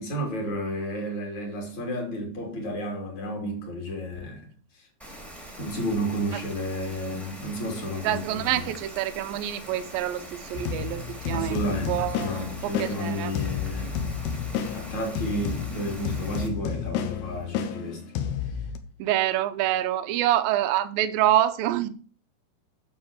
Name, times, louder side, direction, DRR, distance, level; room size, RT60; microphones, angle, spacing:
voice 1, 0.0-4.5 5.6-8.7 11.3-11.9 12.2-14.1 14.7-18.0, equal, 45° left, 3.8 m, -32 dB
Rain, 5.0-16.5, right 1 dB, ahead, 1.2 m, -43 dB
voice 2, 8.0-11.6 11.9-13.3 19.0-21.9, right 13 dB, 80° right, 2.1 m, -26 dB
sound 1, 10.5-18.8, left 7 dB, 75° left, 2.8 m, -31 dB
9.4 x 6.6 x 7.2 m
omnidirectional pair, 5.2 m